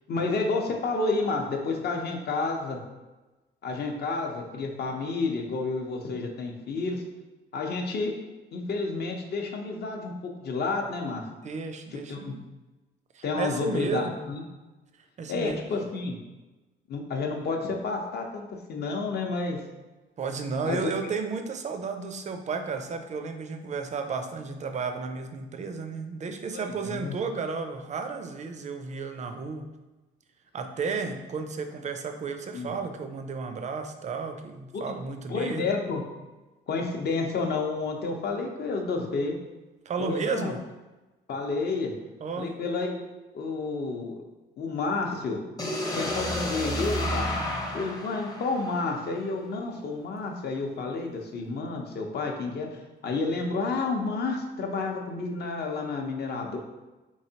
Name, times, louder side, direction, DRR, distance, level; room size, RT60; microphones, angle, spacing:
voice 1, 0.1-2.8 3.6-7.0 7.5-8.1 8.5-10.1 10.4-11.2 12.1-12.4 13.2-14.4 15.3-16.2 16.9-19.6 20.6-20.9 26.5-27.1 32.5-32.8 34.7-34.8 35.3-36.0 36.7-39.4 40.0-40.5 41.3-42.0 42.4-43.0 43.3-44.2 44.6-45.4 45.9-47.3 47.7-56.6, left 3 dB, 55° left, 2 dB, 0.7 m, -30 dB
voice 2, 11.4-12.4 13.1-14.2 15.2-15.6 20.2-29.7 30.5-35.7 39.9-40.6 42.2-42.5, right 5 dB, 35° right, 7 dB, 0.4 m, -33 dB
sound 1, 45.6-49.5, left 1 dB, 20° left, 0.7 m, -31 dB
3.6 x 3.1 x 2.7 m, 1.1 s
cardioid pair, 90°, 20 cm